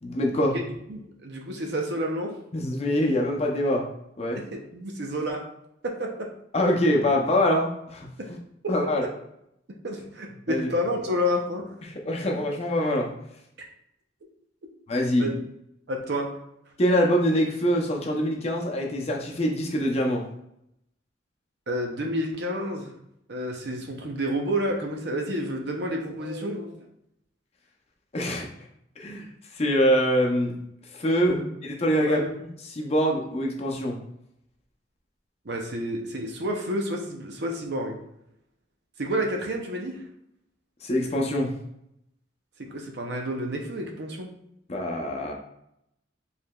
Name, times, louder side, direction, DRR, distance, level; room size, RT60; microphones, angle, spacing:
voice 1, 0.0-0.6 2.5-3.8 4.2-4.4 6.5-8.4 8.7-9.0 10.5-10.7 11.8-13.1 14.9-15.3 16.8-20.2 28.1-28.5 29.0-29.3 29.5-30.6 30.9-32.2 32.6-34.0 40.8-41.5 44.7-45.3, equal, 35° left, 0 dB, 0.6 m, -24 dB
voice 2, 0.9-2.3 4.4-5.4 5.8-6.3 8.2-8.3 8.6-8.8 9.8-11.6 15.2-15.3 15.9-16.3 21.7-22.9 23.3-26.7 31.3-31.5 32.0-32.3 35.4-37.9 39.0-40.0 42.6-44.3, equal, 65° right, 2 dB, 0.7 m, -30 dB
4.7 x 3.2 x 2.3 m, 0.77 s
head